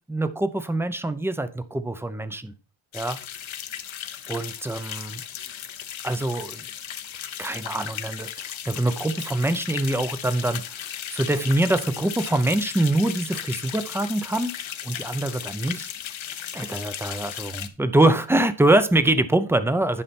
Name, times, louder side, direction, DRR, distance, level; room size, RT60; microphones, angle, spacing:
voice 1, 0.1-2.5 2.9-3.2 4.3-5.2 6.0-6.7 7.2-10.8 11.1-14.5 14.8-15.9 16.5-20.0, right 1 dB, 5° right, 11 dB, 0.6 m, -24 dB
sound 1, 2.9-17.7, left 10 dB, 75° left, 1.0 m, -36 dB
11.0 x 5.7 x 4.2 m, 0.36 s
wide cardioid pair, 160°, 47 cm